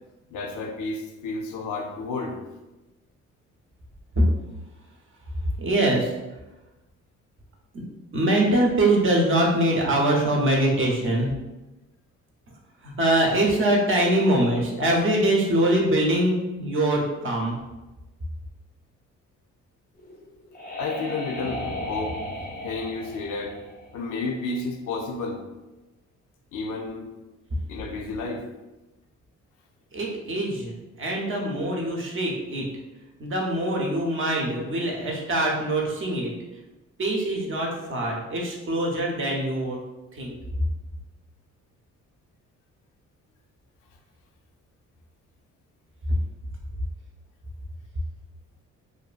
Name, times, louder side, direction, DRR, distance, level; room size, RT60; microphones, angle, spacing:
voice 1, 0.3-2.4 20.8-22.2 22.6-23.6 23.9-25.4 26.5-27.1 27.7-28.5, left 3 dB, 85° left, 2 dB, 0.5 m, -31 dB
voice 2, 5.6-6.1 8.1-11.3 12.8-17.6 29.9-30.7 31.0-32.7 33.2-36.3 37.0-39.8 40.2-40.4, right 1 dB, 45° right, -1 dB, 0.6 m, -23 dB
sound 1, 20.0-24.6, left 1 dB, 30° left, 0.5 m, -35 dB
2.6 x 2.3 x 2.4 m, 1.0 s
cardioid pair, 90°, 30 cm